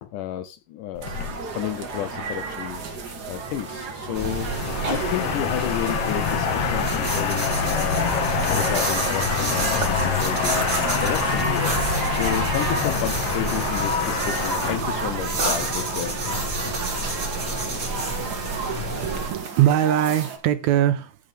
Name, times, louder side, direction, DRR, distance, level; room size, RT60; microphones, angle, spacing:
voice 1, 0.0-1.1 1.5-2.8 3.3-4.5 4.9-10.6 11.0-11.7 12.1-16.2, left 12 dB, 80° left, 2.1 m, -31 dB
sound 1, 0.9-17.5, left 7 dB, 60° left, 1.8 m, -27 dB
sound 2, 1.0-20.4, right 4 dB, 55° right, 1.0 m, -32 dB
sound 3, 4.1-19.3, right 2 dB, 25° right, 4.3 m, -29 dB
voice 2, 18.7-21.2, right 11 dB, 75° right, 1.8 m, -22 dB
14.5 x 5.3 x 3.4 m
omnidirectional pair, 3.9 m